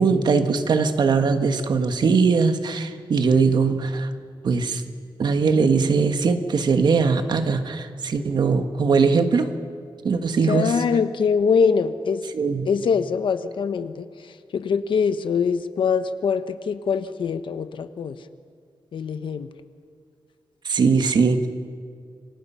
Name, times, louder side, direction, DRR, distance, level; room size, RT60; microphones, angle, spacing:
voice 1, 0.0-4.1 4.4-4.8 5.2-9.5 10.0-10.7 12.3-12.7 20.6-21.5, right 5 dB, 60° right, 7 dB, 1.6 m, -20 dB
voice 2, 10.5-12.2 12.6-14.1 14.5-18.2 18.9-19.5, left 6 dB, 75° left, 10 dB, 1.2 m, -23 dB
28.5 x 25.0 x 5.7 m, 2.2 s
wide cardioid pair, 165°, 8 cm